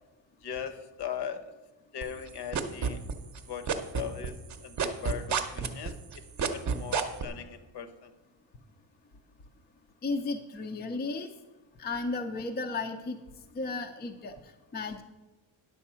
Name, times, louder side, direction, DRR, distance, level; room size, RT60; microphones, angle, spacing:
voice 1, 0.4-1.5 1.9-3.0 3.5-6.0 6.4-8.1, left 8 dB, 55° left, 11 dB, 0.9 m, -39 dB
sound 1, 2.0-3.4 3.7-7.2, right 6 dB, 35° right, 0.8 m, -29 dB
voice 2, 10.0-11.3 11.8-13.2 13.5-14.3 14.7-15.0, left 3 dB, 20° left, 5 dB, 0.5 m, -34 dB
10.0 x 6.9 x 5.6 m, 1.1 s
cardioid pair, 175°, 49 cm